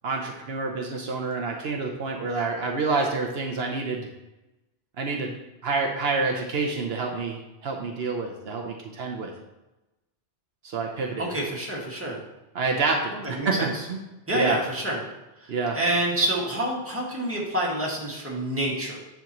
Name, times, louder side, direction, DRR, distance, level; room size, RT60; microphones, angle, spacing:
voice 1, 0.0-4.1 5.0-5.4 5.6-9.3 10.6-11.3 12.5-13.5 13.9-14.0 14.3-14.6 15.5-15.8, right 4 dB, 70° right, 1 dB, 1.0 m, -28 dB
voice 2, 11.2-12.2 13.2-13.7 14.3-15.0 15.4-19.0, right 1 dB, 15° right, -5 dB, 1.8 m, -27 dB
9.4 x 5.8 x 3.0 m, 0.98 s
omnidirectional pair, 1.1 m